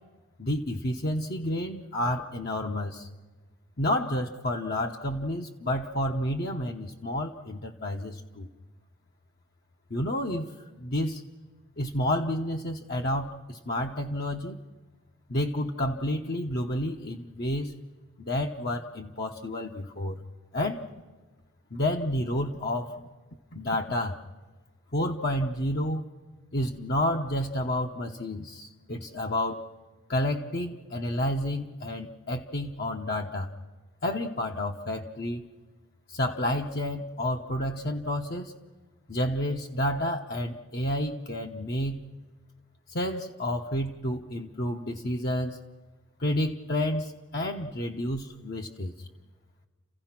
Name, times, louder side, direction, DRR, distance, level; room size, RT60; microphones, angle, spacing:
voice 1, 0.4-3.1 3.8-8.5 9.9-11.2 11.8-14.6 15.3-17.7 18.2-20.2 20.5-20.8 21.7-23.1 23.5-24.2 24.9-26.0 26.5-29.7 30.1-33.5 34.0-35.5 36.1-38.5 39.1-42.0 42.9-45.6 46.2-49.1, left 1 dB, 50° left, 1 dB, 1.0 m, -30 dB
30.0 x 16.0 x 6.0 m, 1.3 s
head